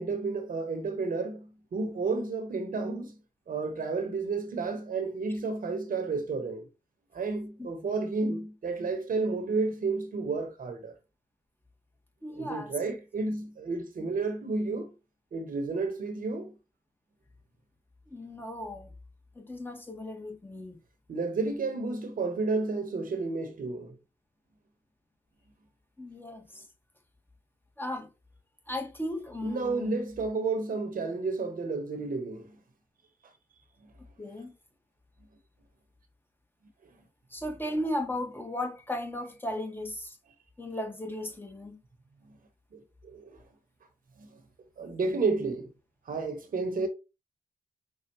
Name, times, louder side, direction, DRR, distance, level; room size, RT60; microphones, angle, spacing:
voice 1, 0.0-3.1 3.5-6.6 7.1-10.9 12.4-14.9 15.3-16.5 21.1-24.0 29.4-32.5 42.7-43.3 44.8-45.7 46.1-46.9, right 3 dB, 70° right, 1.1 m, -31 dB
voice 2, 12.2-12.7 18.1-18.9 19.3-20.8 26.0-26.6 27.8-28.1 28.7-30.0 34.2-34.5 37.3-40.2 40.6-41.8, left 1 dB, 15° left, 1.4 m, -36 dB
5.5 x 2.4 x 2.9 m
supercardioid pair, 40°, 15 cm